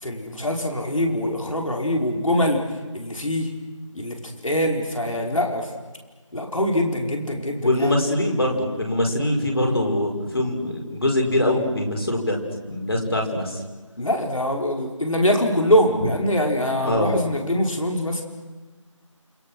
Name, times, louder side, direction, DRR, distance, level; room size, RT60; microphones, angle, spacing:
voice 1, 0.0-2.6 2.9-3.5 3.9-4.2 4.4-5.7 6.3-7.9 14.0-18.2, left 1 dB, 75° left, 1 dB, 5.3 m, -23 dB
voice 2, 7.6-12.4 12.7-13.6 16.8-17.1, left 1 dB, 45° left, 1 dB, 5.1 m, -23 dB
28.5 x 28.0 x 6.5 m, 1.3 s
figure-of-eight pair, 175°, 17 cm